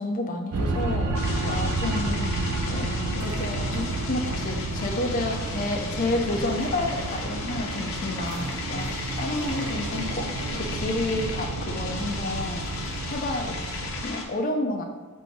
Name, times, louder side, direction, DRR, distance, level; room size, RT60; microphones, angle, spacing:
voice 1, 0.0-2.3 2.7-12.7 13.1-14.8, left 2 dB, 35° left, 3 dB, 0.5 m, -30 dB
sound 1, 0.5-14.1, right 2 dB, 90° right, 0.5 m, -30 dB
sound 2, 1.1-14.2, left 4 dB, 70° left, 0.7 m, -36 dB
4.1 x 2.7 x 4.5 m, 1.3 s
head